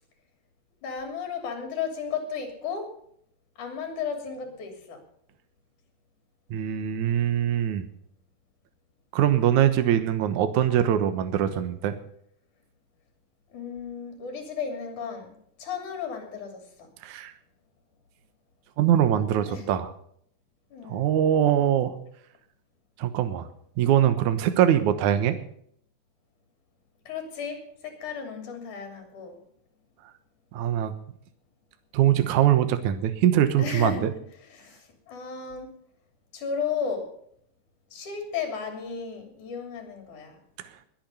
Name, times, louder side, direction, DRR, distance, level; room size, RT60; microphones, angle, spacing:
voice 1, 0.8-2.9 3.6-5.0 13.5-15.3 15.6-16.9 19.5-19.7 20.7-21.1 27.1-29.4 33.6-34.1 34.4-35.7 36.3-37.1 37.9-40.4, left 6 dB, 60° left, 4 dB, 4.5 m, -34 dB
voice 2, 6.5-7.9 9.1-11.9 17.0-17.3 18.8-19.9 20.9-21.9 23.0-23.5 23.8-25.4 30.5-30.9 31.9-34.1, right 10 dB, 65° right, 10 dB, 2.4 m, -22 dB
21.0 x 9.1 x 5.6 m, 0.67 s
omnidirectional pair, 4.0 m